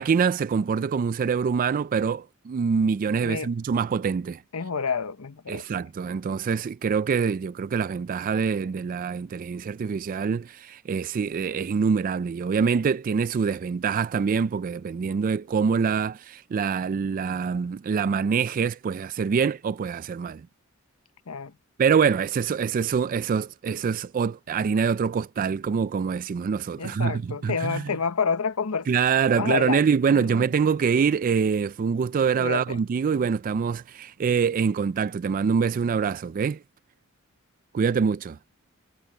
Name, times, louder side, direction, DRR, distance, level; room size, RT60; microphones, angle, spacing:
voice 1, 0.0-4.4 5.5-20.5 21.8-27.9 28.9-36.6 37.7-38.4, right 6 dB, 40° right, 0.3 m, -25 dB
voice 2, 4.5-5.6 21.3-21.5 26.8-28.9 29.3-29.8 30.1-30.4 32.4-32.8, left 5 dB, 85° left, 0.9 m, -28 dB
head